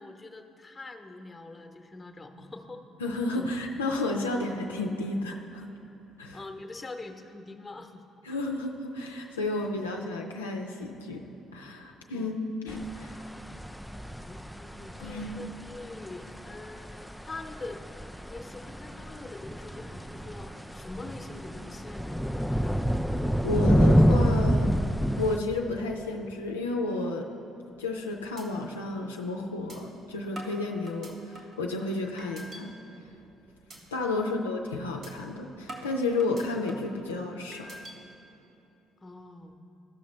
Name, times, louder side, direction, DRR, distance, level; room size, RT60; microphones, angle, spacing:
voice 1, 0.0-2.8 3.3-3.6 6.3-8.0 12.1-12.3 14.2-17.8 18.2-22.3 22.6-23.1 39.0-39.6, left 2 dB, 20° left, 5 dB, 0.9 m, -44 dB
voice 2, 3.0-5.7 6.2-6.4 8.2-11.2 11.5-13.3 15.0-15.5 23.4-24.7 25.2-27.2 27.8-32.7 33.9-37.7, left 2 dB, 90° left, 0 dB, 0.4 m, -32 dB
sound 1, 12.7-25.4, equal, ahead, 0.3 m, -28 dB
sound 2, 27.7-28.0 28.4-28.5 28.9-29.0 29.7-29.8 30.4-31.6 32.2-32.6 33.0-33.3 33.7-33.8 34.2-34.4 35.0-35.1 35.7-37.0 37.5-37.9, right 1 dB, 50° right, 1.6 m, -44 dB
14.0 x 5.9 x 3.2 m, 2.9 s
hypercardioid pair, 50°, 0 cm